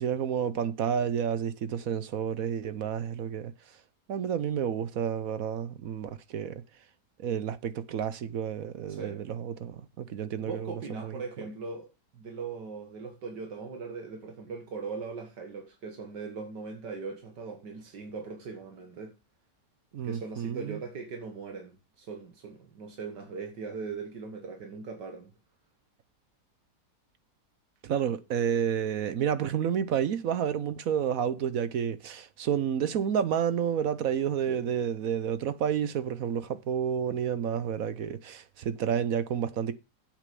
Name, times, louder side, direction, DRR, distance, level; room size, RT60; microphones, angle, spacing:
voice 1, 0.0-3.5 4.1-6.6 7.2-10.7 11.0-11.1 19.9-20.8 27.8-39.7, right 8 dB, 60° right, 1.1 m, -30 dB
voice 2, 8.9-9.2 10.4-19.1 20.0-25.3 34.5-34.7, right 4 dB, 80° right, 2.2 m, -40 dB
8.4 x 6.5 x 6.8 m
omnidirectional pair, 1.8 m